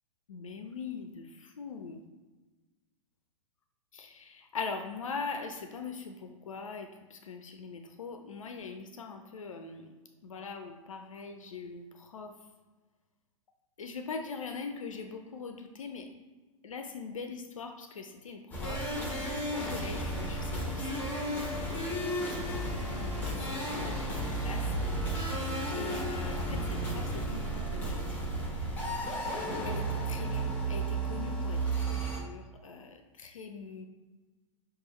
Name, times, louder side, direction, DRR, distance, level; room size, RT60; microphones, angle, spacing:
voice 1, 0.3-2.0 4.0-9.9 10.2-12.3 13.8-16.1 16.6-18.8 19.1-24.6 25.2-28.0 29.1-29.4 29.6-33.9, left 5 dB, 70° left, 5 dB, 0.5 m, -42 dB
sound 1, 18.5-32.2, right 1 dB, 10° left, 1.1 m, -33 dB
6.1 x 2.5 x 3.0 m, 1.2 s
figure-of-eight pair, 110°, 17 cm